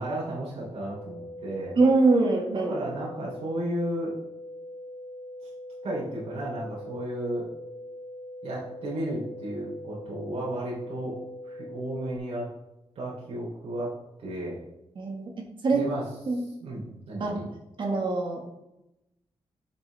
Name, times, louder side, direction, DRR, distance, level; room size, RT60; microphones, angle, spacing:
voice 1, 0.0-1.7 2.5-4.1 5.8-7.5 8.4-11.1 11.4-12.4 12.9-13.9 14.2-14.6 15.7-16.0 16.3-17.5, right 1 dB, 80° right, -6 dB, 3.3 m, -33 dB
sound 1, 0.7-12.2, left 1 dB, 65° left, 1.8 m, -42 dB
voice 2, 1.8-2.8 15.0-15.3 15.6-15.9 16.3-16.5 17.2-17.4 17.8-18.4, right 3 dB, 50° right, 1 dB, 1.8 m, -23 dB
10.5 x 6.4 x 3.4 m, 0.90 s
wide cardioid pair, 155°, 11 cm